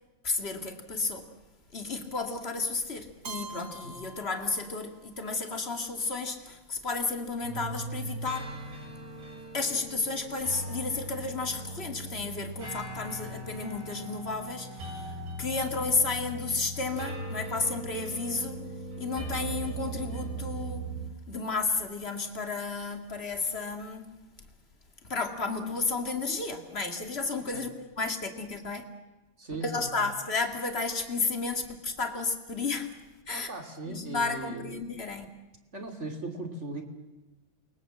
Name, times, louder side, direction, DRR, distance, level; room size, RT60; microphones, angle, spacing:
voice 1, 0.2-1.3 1.7-8.6 9.5-20.9 21.3-24.2 25.0-28.8 29.6-32.9 33.3-33.5 33.9-35.2, left 4 dB, 30° left, 4 dB, 1.2 m, -32 dB
Keyboard (musical), 3.2-5.2, right 4 dB, 45° right, 2.1 m, -44 dB
sound 1, 7.4-21.1, right 2 dB, 85° right, 8.9 m, -39 dB
voice 2, 29.4-30.1 33.3-34.9 35.7-36.8, right 2 dB, 20° right, 4 dB, 2.4 m, -38 dB
29.5 x 23.0 x 7.7 m, 1.1 s
omnidirectional pair, 4.7 m